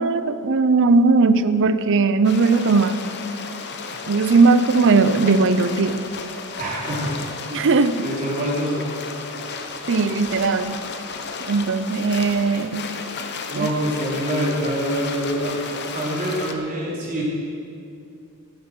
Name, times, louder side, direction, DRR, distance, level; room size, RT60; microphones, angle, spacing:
voice 1, 0.0-3.0 4.1-6.0 7.5-8.0 9.9-10.8 11.4-12.9 13.6-13.7, right 4 dB, 55° right, 12 dB, 0.6 m, -18 dB
sound 1, 2.2-16.5, left 4 dB, 50° left, 0.9 m, -33 dB
voice 2, 6.6-7.7 8.0-9.0 13.5-17.2, right 1 dB, 40° right, -5 dB, 3.6 m, -26 dB
15.0 x 9.7 x 6.2 m, 2.5 s
head